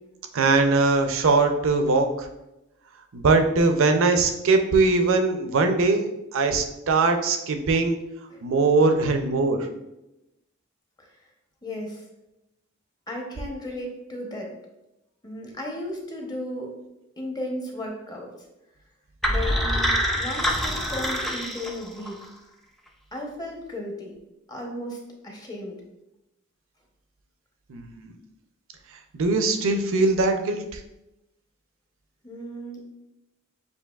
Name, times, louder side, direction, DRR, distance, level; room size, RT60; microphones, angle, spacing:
voice 1, 0.3-2.3 3.1-8.0 8.4-9.6 27.7-28.1 29.1-30.8, right 3 dB, 65° right, 6 dB, 0.5 m, -21 dB
voice 2, 11.6-12.0 13.1-14.5 15.2-16.7 17.2-18.3 19.3-22.2 23.1-24.2 24.5-25.8 32.2-32.8, left 1 dB, 20° left, 0 dB, 0.7 m, -35 dB
sound 1, 19.2-22.3, equal, ahead, 0.4 m, -25 dB
6.9 x 2.7 x 2.3 m, 0.92 s
head